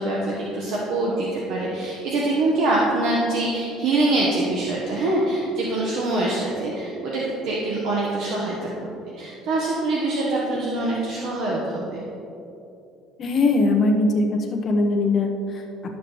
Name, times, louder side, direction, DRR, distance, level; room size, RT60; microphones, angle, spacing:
voice 1, 0.0-8.9 9.2-12.0, right 2 dB, 65° right, -4 dB, 1.2 m, -24 dB
voice 2, 13.2-14.3 14.6-15.6, left 2 dB, 40° left, 2 dB, 1.0 m, -20 dB
12.0 x 6.8 x 3.1 m, 2.8 s
cardioid pair, 135°, 0 cm